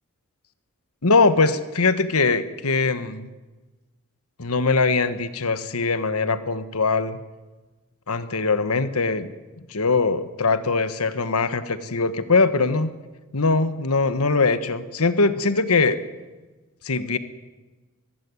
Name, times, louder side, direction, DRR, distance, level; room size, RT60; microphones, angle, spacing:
voice 1, 1.0-3.3 4.4-7.2 8.1-9.3 9.7-12.9 13.3-16.0 16.8-17.2, left 3 dB, 85° left, 12 dB, 1.4 m, -21 dB
23.5 x 15.5 x 9.7 m, 1.2 s
head